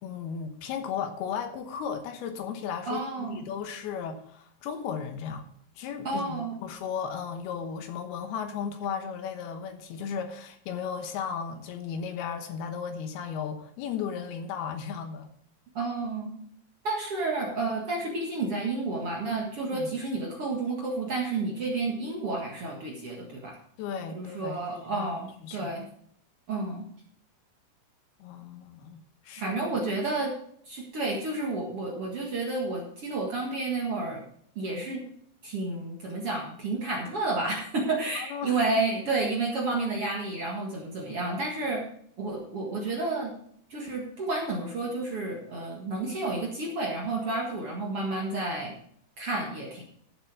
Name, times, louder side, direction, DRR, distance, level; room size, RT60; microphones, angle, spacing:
voice 1, 0.0-5.4 5.8-15.3 19.7-19.9 23.8-25.1 25.4-25.7 28.2-29.6 38.2-38.6, left 7 dB, 80° left, 3.1 m, -35 dB
voice 2, 2.9-3.4 6.0-6.6 15.7-16.3 16.8-23.6 24.1-25.9 26.5-26.9 29.3-30.3 30.7-34.2 34.6-35.0 35.4-41.8 42.2-43.3 43.7-48.7 49.2-49.8, right 3 dB, 50° right, 2.0 m, -31 dB
13.0 x 7.4 x 4.8 m
omnidirectional pair, 4.6 m